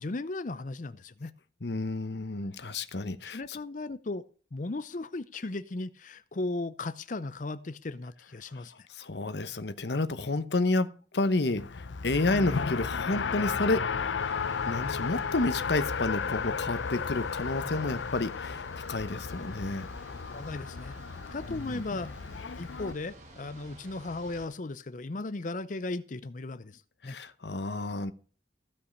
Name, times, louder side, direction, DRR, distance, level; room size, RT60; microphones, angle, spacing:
voice 1, 0.0-1.3 3.3-4.2 4.5-8.7 12.3-12.5 20.3-21.0 21.3-27.2, left 2 dB, 45° left, 0.6 m, -36 dB
voice 2, 1.6-3.6 8.5-8.6 8.9-13.9 14.7-19.9 21.5-22.1 27.0-28.1, left 2 dB, 65° left, 1.0 m, -30 dB
Race car auto racing, 11.6-22.9, left 5 dB, 90° left, 0.6 m, -34 dB
sound 1, 14.2-24.5, right 1 dB, 40° right, 4.2 m, -51 dB
15.5 x 5.6 x 6.5 m
head